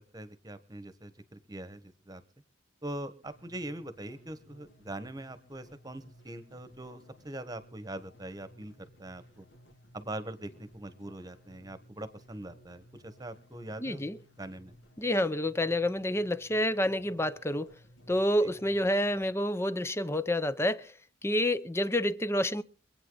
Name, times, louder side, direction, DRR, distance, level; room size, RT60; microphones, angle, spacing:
voice 1, 0.1-2.2 2.8-9.4 9.9-14.0 14.4-14.7 18.4-18.5, right 1 dB, 20° right, 1.3 m, -42 dB
sound 1, 3.2-19.2, equal, 70° left, 2.5 m, -58 dB
voice 2, 13.8-14.2 15.0-17.7 18.1-20.9 21.2-22.6, left 1 dB, 15° left, 0.6 m, -28 dB
25.5 x 8.9 x 3.9 m
head